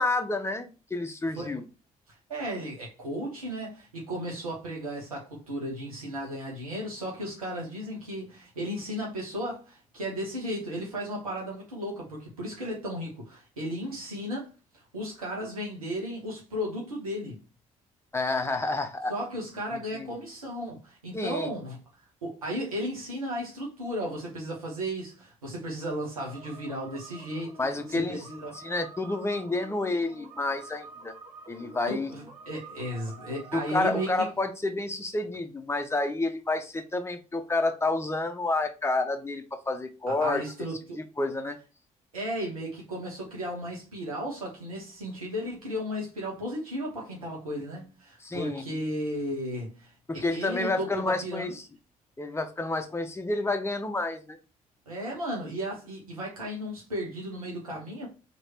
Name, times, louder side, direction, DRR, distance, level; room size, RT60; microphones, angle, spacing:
voice 1, 0.0-1.6 18.1-19.1 19.7-20.1 21.1-21.5 27.6-28.2 28.5-31.1 31.5-32.1 33.5-40.4 41.0-41.6 48.2-48.9 50.1-51.5 52.2-54.4, left 2 dB, 15° left, 0.8 m, -29 dB
voice 2, 2.3-14.5 14.9-17.4 19.1-21.8 22.2-27.6 27.9-28.5 31.9-34.3 40.1-41.0 42.1-51.5 54.9-58.1, equal, 85° right, 1.1 m, -35 dB
sound 1, 26.2-34.3, right 3 dB, 40° right, 1.5 m, -48 dB
3.1 x 3.0 x 4.4 m
figure-of-eight pair, 45°, 18 cm